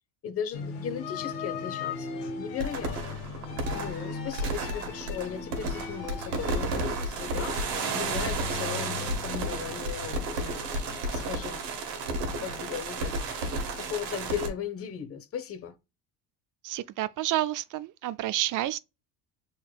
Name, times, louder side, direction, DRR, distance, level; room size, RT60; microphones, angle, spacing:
voice 1, 0.2-3.2 3.7-10.7 11.1-11.6 12.4-15.8, left 8 dB, 30° left, 0.8 m, -37 dB
sound 1, 0.5-11.3, left 5 dB, 90° left, 1.6 m, -39 dB
sound 2, 2.6-14.5, right 2 dB, 90° right, 1.6 m, -32 dB
voice 2, 16.6-18.8, right 14 dB, 45° right, 0.4 m, -29 dB
5.8 x 4.0 x 2.3 m
supercardioid pair, 85°, 47 cm